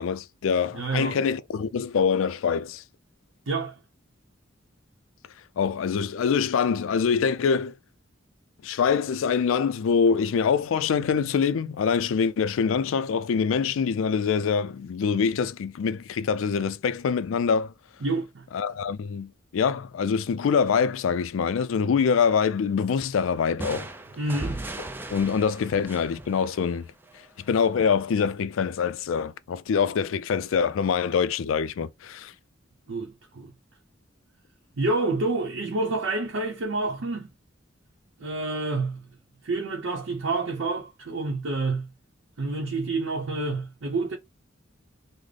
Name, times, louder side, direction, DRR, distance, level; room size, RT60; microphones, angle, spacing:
voice 1, 0.0-2.8 5.6-7.7 8.6-17.7 18.5-23.9 25.1-26.9 27.5-32.3, left 6 dB, 80° left, 0.4 m, -24 dB
voice 2, 0.7-1.2 3.5-3.7 18.0-18.4 24.2-24.6 32.9-33.5 34.8-37.3 38.2-39.1 39.4-41.9 42.4-44.2, right 3 dB, 70° right, 0.7 m, -28 dB
sound 1, 23.6-27.3, right 2 dB, 10° right, 0.4 m, -37 dB
3.2 x 2.1 x 3.7 m
head